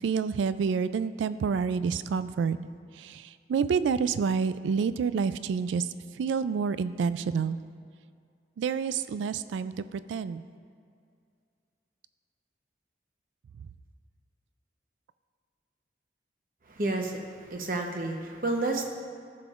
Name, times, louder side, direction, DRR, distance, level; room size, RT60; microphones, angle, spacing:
voice 1, 0.0-2.6 3.0-5.9 6.2-7.6 8.6-10.4, right 6 dB, 85° right, 14 dB, 0.3 m, -28 dB
voice 2, 16.7-18.9, right 2 dB, 45° right, 2 dB, 0.9 m, -30 dB
14.5 x 6.8 x 2.5 m, 2.3 s
head